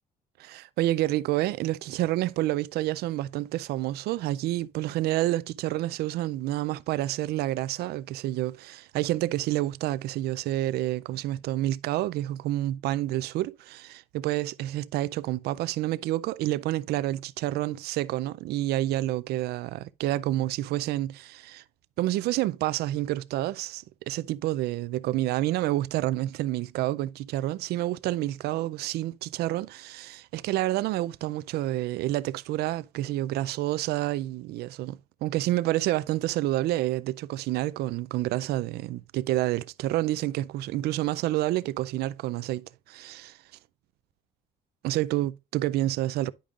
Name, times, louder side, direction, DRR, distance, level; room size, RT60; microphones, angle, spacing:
voice 1, 0.4-21.6 22.0-43.4 44.8-46.3, right 15 dB, 70° right, 0.4 m, -29 dB
10.0 x 5.2 x 2.4 m
cardioid pair, 110°, 17 cm